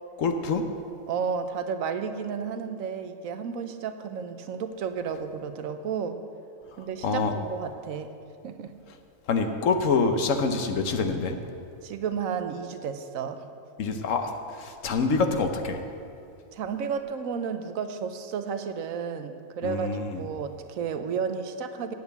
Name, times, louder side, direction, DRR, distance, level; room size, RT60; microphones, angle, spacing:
voice 1, 0.2-0.7 6.8-7.3 9.3-11.4 13.8-15.8 19.6-20.2, left 4 dB, 70° left, 6 dB, 1.2 m, -26 dB
voice 2, 1.1-6.2 6.8-8.1 8.4-8.7 11.8-13.4 16.5-21.9, right 6 dB, 80° right, 9 dB, 1.1 m, -32 dB
8.9 x 7.9 x 8.1 m, 2.5 s
omnidirectional pair, 1.4 m